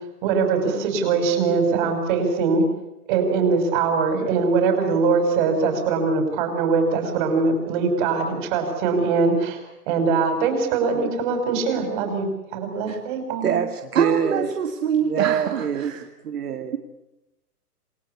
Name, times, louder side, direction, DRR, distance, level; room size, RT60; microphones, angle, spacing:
voice 1, 0.2-2.6 3.1-9.6 9.9-12.3 12.5-13.6, right 4 dB, 30° right, 5 dB, 6.3 m, -22 dB
voice 2, 13.4-14.5 15.0-16.8, right 8 dB, 70° right, 7 dB, 2.3 m, -24 dB
voice 3, 13.9-16.0, right 7 dB, 55° right, 5 dB, 2.5 m, -26 dB
28.5 x 19.5 x 9.9 m, 0.93 s
hypercardioid pair, 160°, 46 cm